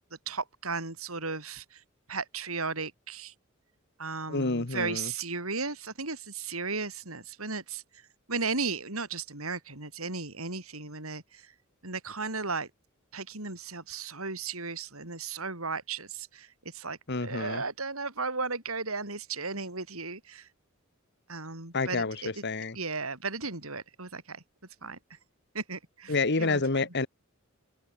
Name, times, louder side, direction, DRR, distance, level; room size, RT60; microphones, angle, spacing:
voice 1, 0.3-1.8 2.1-3.3 4.0-7.8 8.3-11.4 11.8-12.7 13.1-16.5 16.7-20.5 21.3-22.4 22.7-24.4 24.8-25.0 25.5-26.9, right 4 dB, 85° right, 7.9 m, -35 dB
voice 2, 4.3-5.1 17.1-17.6 21.7-22.8 26.1-27.1, left 3 dB, 55° left, 1.6 m, -29 dB
head